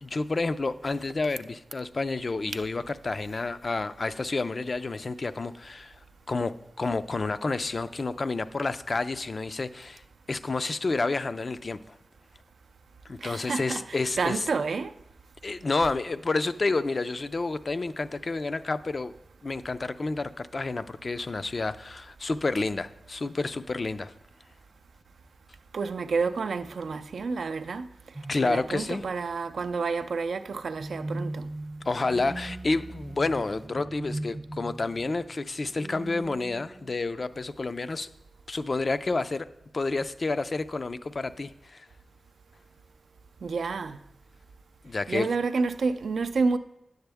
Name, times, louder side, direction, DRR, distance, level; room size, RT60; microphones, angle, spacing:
voice 1, 0.0-6.0 6.3-10.0 10.3-11.8 13.1-14.5 15.4-19.1 19.4-24.1 28.3-29.0 31.9-38.1 38.5-39.5 39.7-41.9 44.8-45.3, left 3 dB, 45° left, 0.3 m, -29 dB
voice 2, 13.2-13.8 14.2-14.9 25.7-27.9 28.4-31.5 43.4-44.0 45.1-46.6, right 4 dB, 90° right, 0.4 m, -29 dB
sound 1, 28.1-29.2 30.8-37.3, right 1 dB, 20° right, 0.4 m, -39 dB
9.7 x 7.8 x 3.4 m
wide cardioid pair, 90°, 0 cm